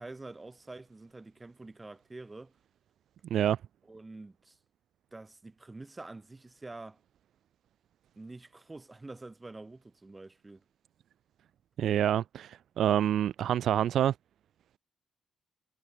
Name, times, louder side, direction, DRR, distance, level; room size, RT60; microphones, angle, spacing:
voice 1, 0.0-2.5 3.9-4.6 5.1-7.0 8.2-10.6, right 2 dB, 15° right, 4.1 m, -47 dB
voice 2, 11.8-14.1, right 10 dB, 65° right, 0.4 m, -27 dB
cardioid pair, 145°, 0 cm